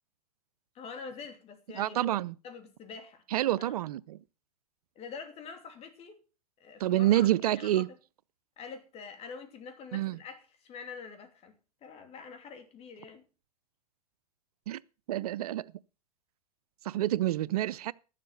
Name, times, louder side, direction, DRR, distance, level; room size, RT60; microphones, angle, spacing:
voice 1, 0.7-2.2 2.4-3.2 3.6-3.8 4.9-6.2 6.6-7.8 8.6-11.5 11.8-13.2, left 5 dB, 30° left, 2.8 m, -45 dB
voice 2, 1.7-2.3 3.3-4.2 6.8-7.9 9.9-10.2 14.7-14.8 15.1-15.6 16.8-17.9, right 13 dB, 70° right, 0.5 m, -28 dB
12.0 x 7.6 x 7.0 m
hypercardioid pair, 115°, 20 cm